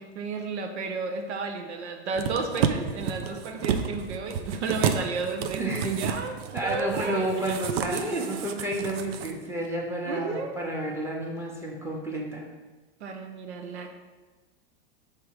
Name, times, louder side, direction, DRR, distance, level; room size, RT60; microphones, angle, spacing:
voice 1, 0.0-6.3 6.6-8.4 10.0-10.5 13.0-13.9, right 4 dB, 90° right, 4 dB, 0.9 m, -33 dB
sound 1, 2.1-9.3 9.6-9.7, right 7 dB, 65° right, 0.6 m, -31 dB
voice 2, 5.6-6.3 6.5-12.5, right 1 dB, 10° right, -1 dB, 1.0 m, -31 dB
5.8 x 3.4 x 4.8 m, 1.3 s
supercardioid pair, 130°, 33 cm